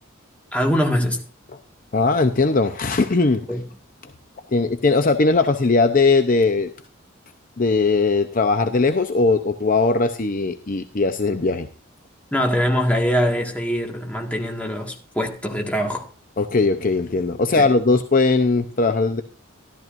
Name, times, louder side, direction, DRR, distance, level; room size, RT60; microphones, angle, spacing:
voice 1, 0.5-1.2 3.5-3.6 12.3-16.1 17.6-17.7, equal, 5° left, 1.8 m, -23 dB
voice 2, 1.9-3.5 4.5-6.7 7.6-11.7 16.4-19.2, left 3 dB, 40° left, 0.7 m, -19 dB
13.5 x 12.5 x 2.6 m
head